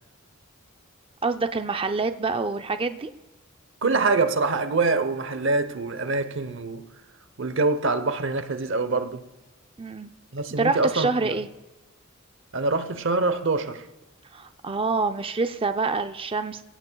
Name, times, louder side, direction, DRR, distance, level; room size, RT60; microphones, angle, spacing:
voice 1, 1.2-3.1 9.8-10.1 10.6-11.5 14.3-16.6, right 3 dB, 25° right, 0.5 m, -26 dB
voice 2, 3.8-6.9 7.4-9.2 10.3-11.3 12.5-13.8, right 3 dB, 60° right, 0.8 m, -25 dB
26.0 x 16.5 x 2.3 m
head